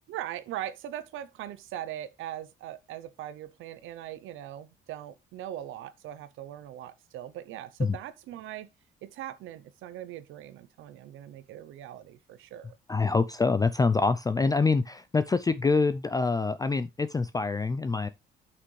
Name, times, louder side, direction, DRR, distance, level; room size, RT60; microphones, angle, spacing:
voice 1, 0.1-8.7 9.0-12.8, right 12 dB, 85° right, 0.6 m, -40 dB
voice 2, 12.9-18.1, left 4 dB, 20° left, 0.4 m, -25 dB
9.6 x 5.9 x 3.2 m
cardioid pair, 90°, 20 cm